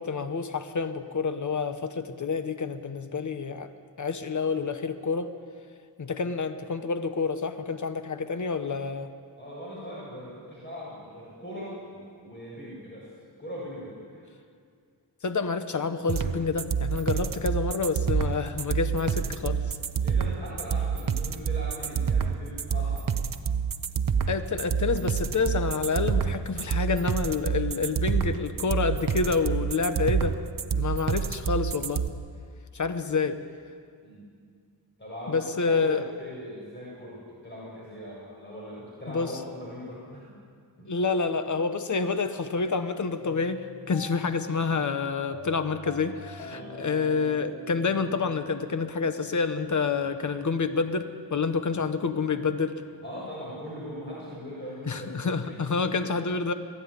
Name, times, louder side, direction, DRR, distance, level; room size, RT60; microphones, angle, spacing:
voice 1, 0.0-3.7 4.0-5.3 6.0-9.1 15.2-19.8 24.3-30.3 30.7-32.0 32.7-33.4 35.3-36.0 39.1-39.4 40.9-52.8 54.9-56.5, left 4 dB, 45° left, 9 dB, 1.2 m, -28 dB
voice 2, 9.4-13.1 13.4-14.3 19.9-23.1 34.0-34.3 35.0-40.2 40.8-40.9 46.5-46.7 53.0-55.7, equal, 25° left, -7 dB, 7.3 m, -40 dB
sound 1, 16.1-32.1, right 6 dB, 50° right, 1.0 m, -27 dB
sound 2, 43.1-49.3, left 4 dB, 90° left, 3.7 m, -44 dB
20.0 x 14.0 x 9.8 m, 2.2 s
wide cardioid pair, 85°, 42 cm